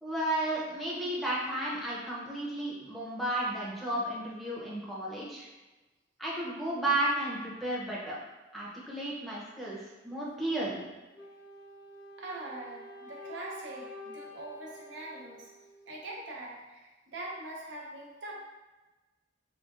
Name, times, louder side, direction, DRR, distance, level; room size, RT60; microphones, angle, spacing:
voice 1, 0.0-5.5 6.2-8.2 8.5-10.8, right 1 dB, ahead, -6 dB, 0.6 m, -33 dB
Wind instrument woodwind instrument, 11.1-16.2, left 1 dB, 60° left, 0.5 m, -48 dB
voice 2, 12.2-15.5 15.9-18.3, right 2 dB, 90° right, -4 dB, 0.7 m, -43 dB
3.8 x 2.3 x 2.4 m, 1.2 s
head